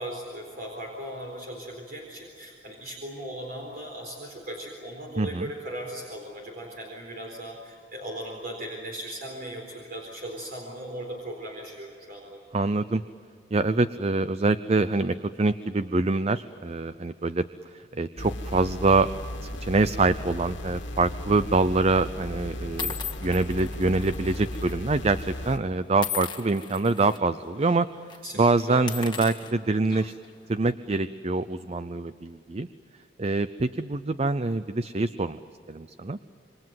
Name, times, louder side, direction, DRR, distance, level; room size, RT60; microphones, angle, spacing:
voice 1, 0.0-12.4 28.2-28.9, right 1 dB, 50° right, 0 dB, 4.2 m, -38 dB
voice 2, 5.2-5.5 12.5-13.0 13.5-17.4 17.7-19.1 19.4-22.9 23.2-27.9 28.4-30.1 30.5-32.7 33.2-35.4 35.7-36.2, right 3 dB, 35° right, 13 dB, 0.6 m, -25 dB
sound 1, 18.2-25.6, left 1 dB, 90° left, 2.1 m, -36 dB
sound 2, 21.1-21.4 22.2-22.3 22.8-24.7 25.0-25.2 26.0-27.2 27.6-27.8 28.1-28.2 28.7-30.3, left 8 dB, 25° left, 1.7 m, -37 dB
27.5 x 24.5 x 7.8 m, 2.5 s
head